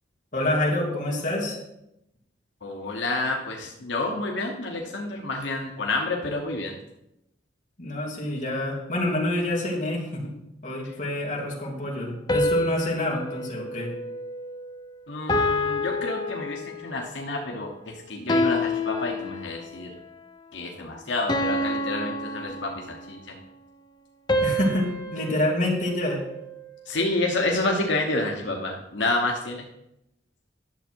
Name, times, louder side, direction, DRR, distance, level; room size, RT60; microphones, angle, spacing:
voice 1, 0.3-1.6 7.8-10.3 10.6-13.9 24.4-26.2, left 1 dB, 45° left, -3 dB, 2.5 m, -27 dB
voice 2, 2.6-6.8 15.1-19.9 20.5-23.4 26.8-29.6, left 2 dB, 80° left, 0 dB, 1.2 m, -29 dB
sound 1, 12.3-14.8 15.3-17.0 18.3-19.8 21.3-23.2 24.3-26.7, left 1 dB, 25° left, 0.7 m, -28 dB
11.0 x 7.2 x 4.6 m, 0.86 s
head